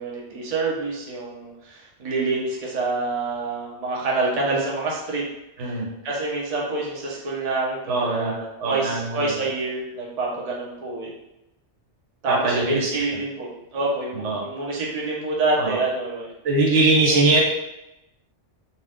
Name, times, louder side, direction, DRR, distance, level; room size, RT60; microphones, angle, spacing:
voice 1, 0.0-5.2 5.6-5.7 6.0-11.1 12.2-16.3 17.0-17.3, right 3 dB, 40° right, -4 dB, 0.7 m, -27 dB
voice 2, 7.9-8.3 8.6-9.2 12.3-13.0 14.1-14.4 15.6-15.8 16.4-17.4, right 2 dB, 80° right, -2 dB, 1.1 m, -21 dB
2.7 x 2.2 x 3.5 m, 0.90 s
omnidirectional pair, 1.2 m